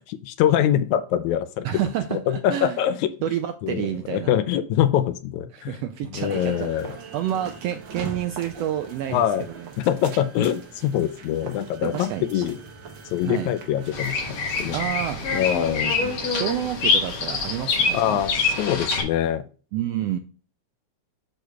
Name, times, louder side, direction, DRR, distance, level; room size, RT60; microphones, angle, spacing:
voice 1, 0.2-1.7 2.1-3.1 3.6-5.8 6.1-7.0 9.1-9.5 9.8-12.6 13.1-14.8 15.3-16.0 17.9-19.5, left 10 dB, 80° left, 12 dB, 1.9 m, -24 dB
voice 2, 1.6-2.8 3.2-4.3 5.5-6.7 7.1-9.7 11.8-12.4 13.2-13.5 14.7-15.2 15.8-18.2 19.7-20.2, right 11 dB, 85° right, 8 dB, 1.4 m, -29 dB
sound 1, 6.2-15.5, right 4 dB, 60° right, 1.2 m, -41 dB
Bird vocalization bird call bird song, 13.9-19.0, left 4 dB, 65° left, 2.8 m, -25 dB
7.9 x 6.5 x 2.4 m, 0.37 s
omnidirectional pair, 3.4 m